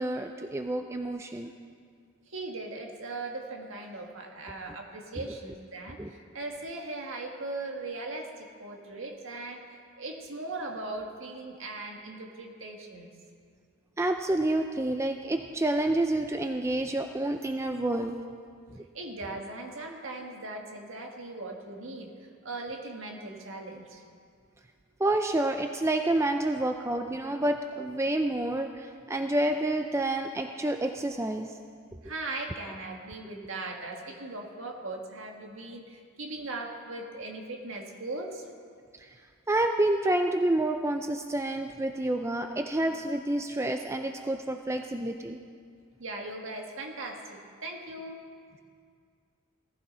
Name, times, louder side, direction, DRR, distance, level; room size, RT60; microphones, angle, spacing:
voice 1, 0.0-1.5 6.0-6.1 14.0-18.2 25.0-31.5 39.0-39.1 39.5-45.4, right 1 dB, 10° right, 5 dB, 0.4 m, -28 dB
voice 2, 2.3-9.6 10.0-13.1 18.9-22.1 22.4-24.0 32.0-38.5 46.0-48.2, right 2 dB, 60° right, 2 dB, 1.8 m, -39 dB
18.0 x 15.0 x 4.3 m, 2.1 s
head